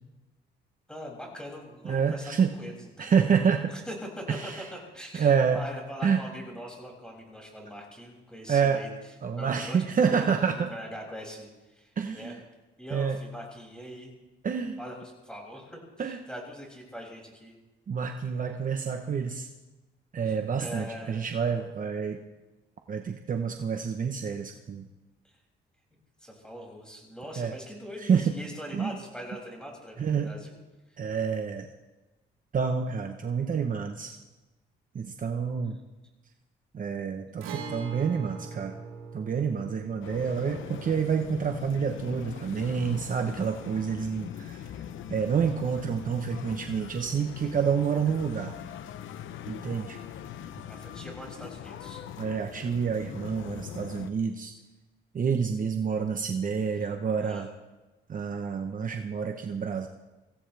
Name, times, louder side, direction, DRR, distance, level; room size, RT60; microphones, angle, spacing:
voice 1, 0.9-3.1 3.7-9.8 10.0-10.3 10.5-12.4 12.8-14.1 14.8-17.5 20.2-21.3 25.2-25.4 26.2-30.5 30.9-31.0 35.6-35.7 50.6-52.0 57.2-57.5, equal, 5° left, -1 dB, 6.8 m, -42 dB
voice 2, 1.8-2.5 3.0-3.7 4.3-4.6 5.1-5.6 6.0-6.2 8.5-8.8 9.2-10.7 12.0-12.4 12.9-13.2 14.4-14.8 16.0-16.2 17.9-19.5 20.1-22.2 22.9-24.9 27.4-27.5 28.0-28.3 28.7-28.9 30.0-30.3 31.0-31.7 32.5-34.2 34.9-35.8 36.7-38.7 39.1-44.6 45.1-48.5 49.5-50.0 52.2-54.5 55.1-57.5 58.1-59.9, right 6 dB, 45° right, 5 dB, 1.0 m, -28 dB
Guitar, 37.4-45.0 45.3-45.4 47.4-47.5, right 5 dB, 85° right, 3.7 m, -44 dB
sound 1, 40.0-54.1, left 10 dB, 80° left, 0.9 m, -41 dB
24.0 x 16.5 x 3.5 m, 1.1 s
cardioid pair, 90°, 20 cm